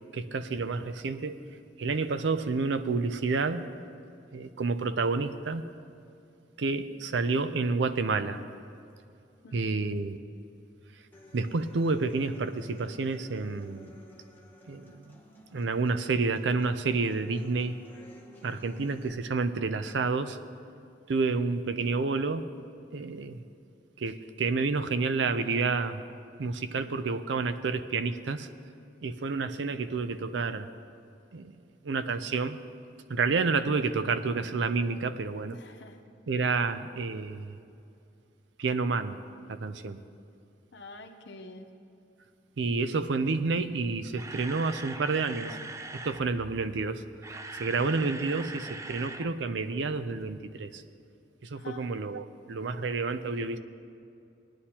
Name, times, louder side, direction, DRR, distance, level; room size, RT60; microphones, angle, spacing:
voice 1, 0.1-1.4 1.8-3.7 4.3-5.6 6.6-8.4 9.5-10.2 11.3-13.9 14.7-15.2 15.5-17.8 18.4-20.4 21.1-22.5 22.9-23.4 24.0-26.0 26.4-28.5 29.0-30.7 31.3-31.6 31.8-32.6 33.1-35.6 36.3-37.6 38.6-39.2 39.5-40.0 42.6-45.6 45.9-50.8 51.4-53.6, right 4 dB, 85° right, 11 dB, 0.5 m, -29 dB
voice 2, 9.4-9.9 35.5-36.0 40.7-41.7 51.5-51.9, left 2 dB, 80° left, 5 dB, 0.8 m, -47 dB
Human voice / Acoustic guitar, 11.1-19.1, left 1 dB, 10° left, 0.9 m, -53 dB
Camera, 44.0-46.3 47.0-49.3 49.6-49.7 50.2-50.3, right 3 dB, 15° right, 0.3 m, -41 dB
19.0 x 9.7 x 2.9 m, 2.6 s
head